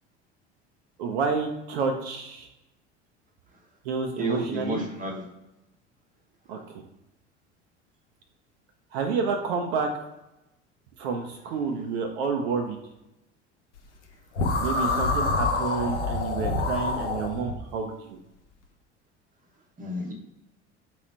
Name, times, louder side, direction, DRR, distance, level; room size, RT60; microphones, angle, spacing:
voice 1, 1.0-2.5 3.8-4.9 6.5-6.8 8.9-9.9 11.0-12.8 14.6-18.2, right 5 dB, 60° right, 4 dB, 0.6 m, -29 dB
voice 2, 4.2-5.2 19.8-20.1, right 1 dB, 25° right, 1 dB, 0.9 m, -30 dB
sound 1, 14.4-17.6, left 3 dB, 80° left, 0.7 m, -26 dB
3.9 x 3.0 x 4.1 m, 0.94 s
figure-of-eight pair, 70°, 35 cm